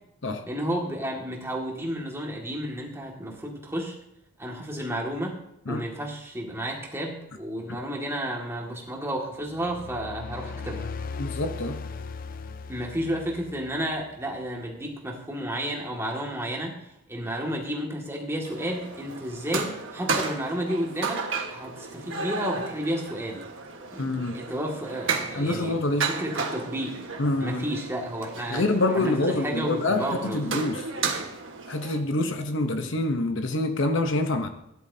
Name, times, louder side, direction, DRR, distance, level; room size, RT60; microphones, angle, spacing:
voice 1, 0.5-4.0 4.4-5.4 5.7-10.9 12.7-16.8 17.1-21.2 21.5-23.4 23.9-27.0 27.4-28.6 28.9-30.4, equal, 10° right, -1 dB, 2.0 m, -32 dB
sound 1, 9.5-14.2, left 4 dB, 40° left, 0.4 m, -38 dB
voice 2, 11.2-11.8 24.0-24.4 25.3-26.1 27.2-27.7 28.5-30.8 31.7-34.5, left 2 dB, 60° left, 6 dB, 0.9 m, -26 dB
sound 2, 18.4-32.0, right 4 dB, 60° right, 1.5 m, -33 dB
17.0 x 11.0 x 2.8 m, 0.82 s
head